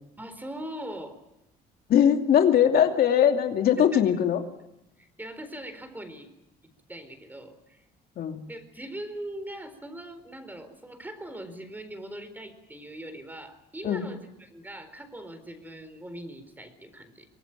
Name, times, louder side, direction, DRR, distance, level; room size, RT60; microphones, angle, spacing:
voice 1, 0.2-1.2 3.8-4.0 5.0-6.3 6.9-7.8 8.5-17.3, right 1 dB, 10° right, 10 dB, 4.2 m, -41 dB
voice 2, 1.9-4.4 8.2-8.4 13.8-14.0, left 9 dB, 60° left, 5 dB, 2.6 m, -21 dB
24.0 x 19.0 x 9.1 m, 0.85 s
cardioid pair, 110°, 17 cm